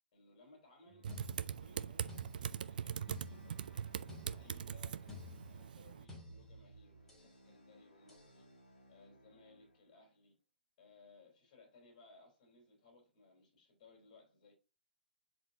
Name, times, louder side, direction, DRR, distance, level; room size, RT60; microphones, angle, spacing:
voice 1, 0.1-1.0 1.6-8.5 8.9-10.4 10.8-14.5, left 3 dB, 40° left, 3.9 m, -64 dB
sound 1, 0.9-10.1, equal, 80° left, 2.1 m, -65 dB
Typing, 1.0-6.0, right 8 dB, 55° right, 0.4 m, -42 dB
sound 2, 1.1-7.4 8.1-8.4, left 2 dB, 5° left, 2.7 m, -54 dB
10.5 x 4.4 x 2.8 m
figure-of-eight pair, 120°, 6 cm